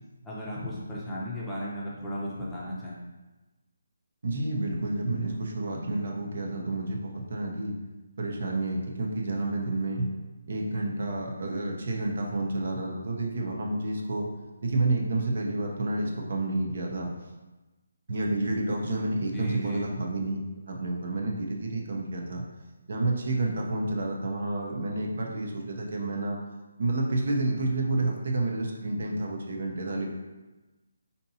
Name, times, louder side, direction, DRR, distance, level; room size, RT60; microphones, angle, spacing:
voice 1, 0.2-3.0 19.3-19.9, equal, 5° left, -8 dB, 0.6 m, -35 dB
voice 2, 4.2-7.7 8.2-10.1 10.5-14.3 14.6-17.1 18.1-20.4 20.7-22.4 22.9-26.4 26.8-30.1, right 2 dB, 60° right, 0 dB, 0.7 m, -29 dB
4.4 x 2.7 x 2.8 m, 1.1 s
hypercardioid pair, 165°, 0 cm